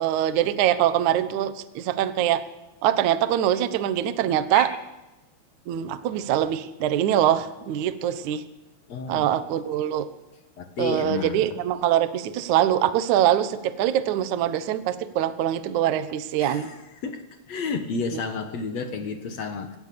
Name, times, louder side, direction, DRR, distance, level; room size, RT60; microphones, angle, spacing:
voice 1, 0.0-2.4 2.8-4.7 5.7-8.4 9.1-10.1 10.8-16.7, right 11 dB, 65° right, 12 dB, 2.0 m, -23 dB
voice 2, 8.9-9.3 10.6-11.5 16.4-17.2 17.5-19.8, left 4 dB, 55° left, 7 dB, 2.0 m, -31 dB
24.0 x 18.0 x 7.0 m, 1.0 s
omnidirectional pair, 4.8 m